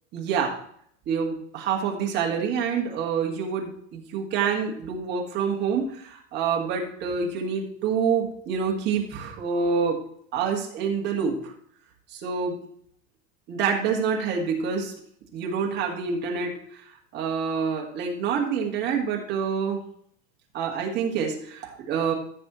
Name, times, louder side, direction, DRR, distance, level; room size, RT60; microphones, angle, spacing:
voice 1, 0.1-0.6 1.1-10.0 10.3-11.5 12.1-12.6 13.5-14.9 15.3-19.8 20.5-22.1, right 6 dB, 25° right, 1 dB, 1.7 m, -27 dB
14.0 x 6.2 x 3.1 m, 0.64 s
supercardioid pair, 170°, 41 cm